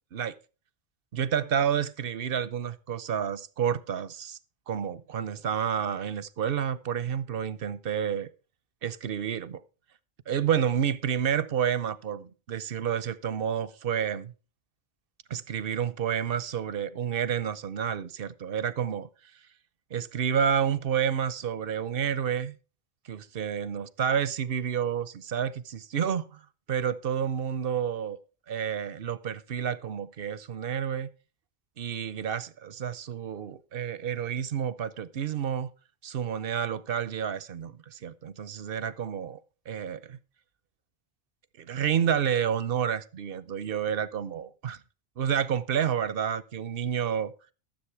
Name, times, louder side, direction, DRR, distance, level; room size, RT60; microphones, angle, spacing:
voice 1, 1.1-4.4 4.7-8.3 8.8-9.6 10.3-14.3 15.3-19.1 19.9-22.6 23.1-26.4 26.7-28.2 28.5-31.1 31.8-35.7 36.0-39.4 39.7-40.2 41.6-44.8 45.2-47.3, right 8 dB, 65° right, 0.9 m, -29 dB
13.0 x 7.5 x 4.6 m
omnidirectional pair, 1.0 m